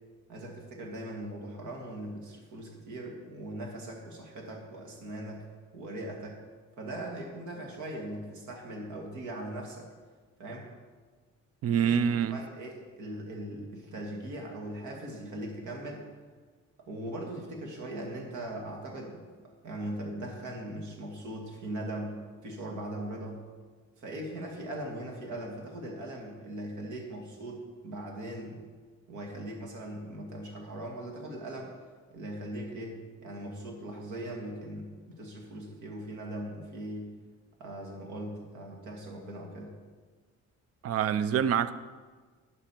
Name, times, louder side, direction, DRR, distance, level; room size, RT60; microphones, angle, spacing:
voice 1, 0.3-5.4 5.7-6.4 6.8-9.9 10.4-10.7 11.8-16.0 16.8-19.2 19.6-23.4 24.0-28.6 29.1-31.7 32.1-37.1 37.6-39.7, right 1 dB, 75° right, 2.0 m, -40 dB
voice 2, 11.6-12.4 40.8-41.7, right 8 dB, 55° right, 0.5 m, -26 dB
11.0 x 5.4 x 4.5 m
cardioid pair, 105°, 29 cm